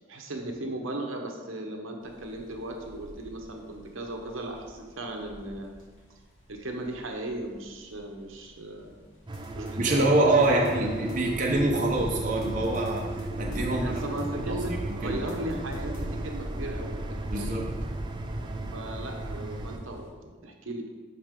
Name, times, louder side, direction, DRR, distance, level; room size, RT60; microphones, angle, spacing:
voice 1, 0.0-5.7 6.5-8.9 9.5-11.0 13.6-17.6 18.7-20.9, right 1 dB, 75° right, 2 dB, 1.0 m, -37 dB
sound 1, 2.0-20.1, right 1 dB, 70° left, 2.3 m, -40 dB
sound 2, 9.3-11.5 11.7-13.2 13.5-16.5, left 1 dB, 85° left, 1.5 m, -42 dB
sound 3, 9.3-19.8, right 3 dB, 20° right, 0.4 m, -36 dB
voice 2, 9.8-13.1 13.4-14.0 15.0-15.2 17.3-17.7, right 2 dB, 40° right, -1 dB, 0.8 m, -25 dB
11.5 x 4.2 x 3.7 m, 1.4 s
head